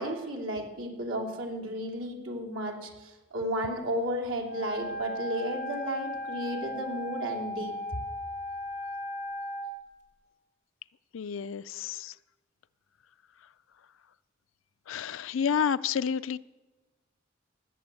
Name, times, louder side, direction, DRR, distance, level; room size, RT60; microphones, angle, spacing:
voice 1, 0.0-7.8, equal, 80° right, 0 dB, 3.1 m, -33 dB
Wind instrument woodwind instrument, 4.4-9.7, left 1 dB, 60° left, 4.0 m, -36 dB
voice 2, 11.1-12.1 14.9-16.4, left 7 dB, 80° left, 16 dB, 0.5 m, -30 dB
19.5 x 7.8 x 8.2 m, 1.2 s
head